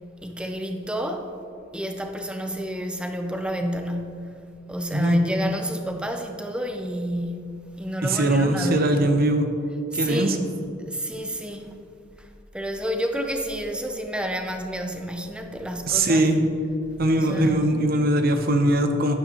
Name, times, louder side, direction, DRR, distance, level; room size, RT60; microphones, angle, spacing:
voice 1, 0.2-1.3 1.7-4.4 4.7-8.9 9.9-10.4 10.8-11.8 12.5-16.2 17.1-17.7, equal, 5° right, 4 dB, 0.7 m, -30 dB
voice 2, 8.0-9.5 9.9-10.4 15.9-16.4 17.0-19.1, right 1 dB, 55° right, 6 dB, 0.8 m, -21 dB
11.5 x 9.5 x 3.0 m, 2.6 s
head